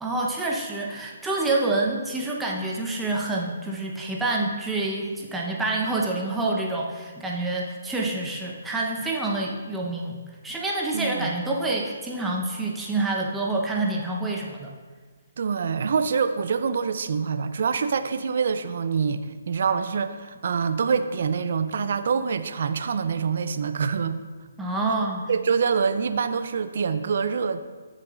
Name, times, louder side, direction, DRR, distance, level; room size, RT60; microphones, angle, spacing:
voice 1, 0.0-10.2 10.4-14.7 24.6-25.2, right 2 dB, 10° right, -3 dB, 0.9 m, -27 dB
voice 2, 10.9-11.3 15.4-24.2 25.3-27.6, right 6 dB, 60° right, 10 dB, 0.5 m, -25 dB
13.0 x 6.5 x 2.5 m, 1.4 s
figure-of-eight pair, 140°, 0 cm